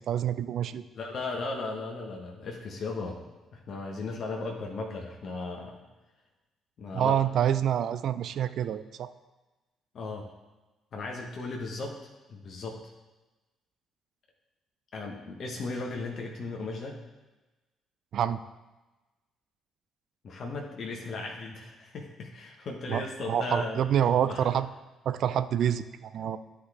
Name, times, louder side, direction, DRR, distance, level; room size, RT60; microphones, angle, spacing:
voice 1, 0.0-0.8 6.9-9.1 18.1-18.4 22.9-24.7 25.1-26.4, right 9 dB, 60° right, 13 dB, 0.4 m, -27 dB
voice 2, 0.9-3.2 3.5-5.8 6.8-7.2 9.9-10.2 10.9-11.9 12.3-12.8 14.9-17.0 20.2-23.8 24.2-24.5, left 3 dB, 55° left, 0 dB, 1.1 m, -36 dB
11.5 x 5.0 x 3.6 m, 1.1 s
figure-of-eight pair, 45°, 0 cm